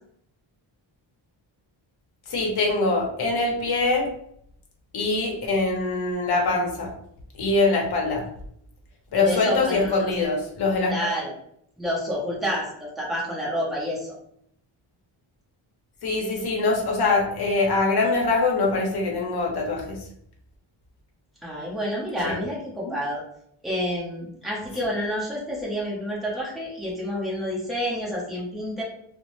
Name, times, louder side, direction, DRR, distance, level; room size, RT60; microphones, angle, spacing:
voice 1, 2.3-4.1 4.9-6.9 7.4-8.2 9.1-11.1 16.0-20.0 22.2-22.4, left 3 dB, 55° left, 0 dB, 0.8 m, -23 dB
voice 2, 9.2-10.1 10.9-11.3 11.8-14.1 21.4-23.2 23.6-28.8, equal, ahead, -5 dB, 0.7 m, -29 dB
2.8 x 2.0 x 2.9 m, 0.70 s
wide cardioid pair, 175°, 48 cm